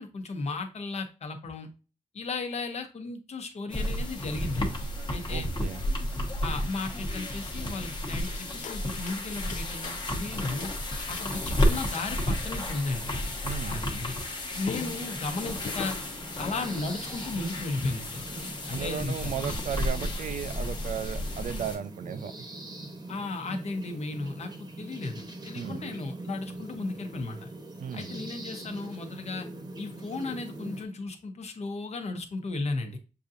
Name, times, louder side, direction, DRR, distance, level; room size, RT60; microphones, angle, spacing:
voice 1, 0.0-1.7 2.1-4.8 5.1-5.5 6.4-10.7 11.1-13.2 13.7-14.2 14.5-16.0 16.3-18.2 18.7-19.5 23.1-27.5 27.9-29.5 29.8-33.0, left 3 dB, 60° left, 5 dB, 0.9 m, -35 dB
sound 1, 3.7-21.8, left 1 dB, 35° left, 1.0 m, -32 dB
voice 2, 5.3-5.8 13.4-13.8 18.7-22.3 25.5-25.9 27.8-28.1, right 9 dB, 80° right, 12 dB, 0.4 m, -35 dB
sound 2, 8.2-10.8 11.2-12.3 14.3-14.4 14.6-16.3, left 6 dB, 75° left, 0.4 m, -43 dB
sound 3, 14.7-30.8, right 2 dB, 30° right, 0.9 m, -43 dB
6.6 x 2.7 x 2.5 m, 0.31 s
wide cardioid pair, 140°, 13 cm